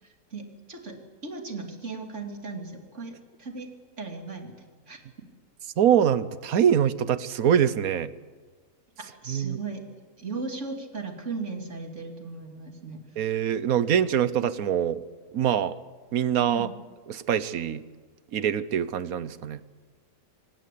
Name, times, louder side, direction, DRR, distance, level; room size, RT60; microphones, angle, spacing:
voice 1, 0.3-1.0 1.2-3.7 4.0-4.6 4.9-5.0 9.2-9.8 10.2-13.0 16.5-16.7, right 4 dB, 55° right, 4 dB, 3.2 m, -36 dB
voice 2, 5.8-8.1 9.3-9.6 13.2-15.0 15.3-15.7 16.1-16.7 17.1-17.8 18.3-19.6, right 9 dB, 75° right, 15 dB, 1.4 m, -24 dB
25.5 x 19.0 x 8.5 m, 1.4 s
omnidirectional pair, 1.5 m